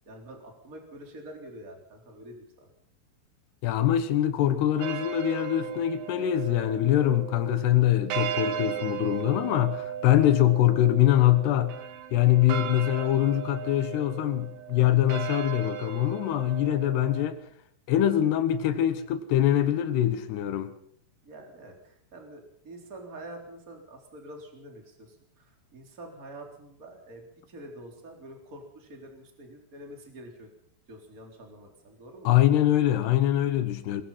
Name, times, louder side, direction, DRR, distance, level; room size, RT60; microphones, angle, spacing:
voice 1, 0.1-2.7 10.2-10.3 21.2-30.5 30.9-32.4, right 1 dB, 20° right, 3.5 m, -46 dB
voice 2, 3.6-11.8 12.1-17.4 17.9-20.7 32.2-34.0, left 12 dB, 70° left, 2.6 m, -23 dB
sound 1, 4.8-17.3, right 9 dB, 85° right, 1.7 m, -36 dB
22.5 x 20.5 x 5.7 m
omnidirectional pair, 5.8 m